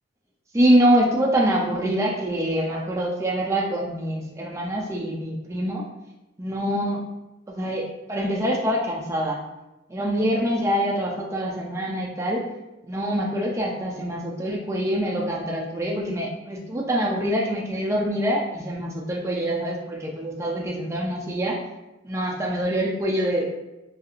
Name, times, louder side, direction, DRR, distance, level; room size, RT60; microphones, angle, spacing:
voice 1, 0.5-5.9 6.4-7.0 7.5-9.4 9.9-12.5 12.8-21.6 22.0-23.5, equal, 15° right, -2 dB, 0.4 m, -25 dB
2.7 x 2.6 x 2.4 m, 0.96 s
head